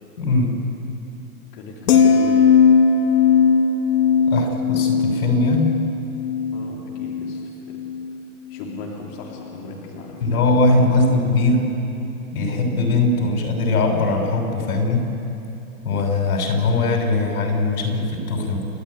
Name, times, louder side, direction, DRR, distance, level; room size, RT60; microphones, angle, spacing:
voice 1, 0.2-0.5 4.3-5.7 10.2-11.6 12.3-15.1 15.8-18.7, left 2 dB, 90° left, 2 dB, 6.5 m, -20 dB
voice 2, 1.5-2.5 6.5-7.8 8.5-10.9, left 3 dB, 30° left, -2 dB, 3.3 m, -37 dB
sound 1, 1.9-8.2 8.5-8.8, left 6 dB, 70° left, 2.0 m, -18 dB
30.0 x 12.5 x 9.8 m, 3.0 s
supercardioid pair, 170°, 44 cm